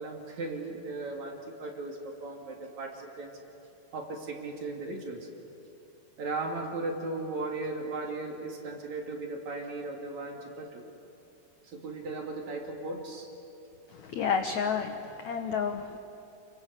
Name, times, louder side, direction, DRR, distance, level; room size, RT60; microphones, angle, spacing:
voice 1, 0.0-3.4 3.9-5.3 6.2-10.9 11.6-13.3, right 2 dB, 45° right, 1 dB, 3.6 m, -37 dB
voice 2, 14.0-16.0, left 6 dB, 75° left, 5 dB, 1.7 m, -30 dB
29.0 x 23.5 x 8.3 m, 2.7 s
omnidirectional pair, 4.8 m